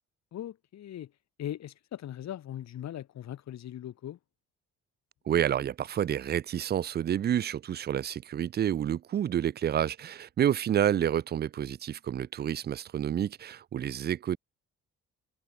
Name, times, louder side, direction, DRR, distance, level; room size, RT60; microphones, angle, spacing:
voice 1, 0.3-1.1 1.4-4.2, left 11 dB, 60° left, 1.3 m, -39 dB
voice 2, 5.3-14.4, right 10 dB, 35° right, 0.4 m, -29 dB
cardioid pair, 90°, 30 cm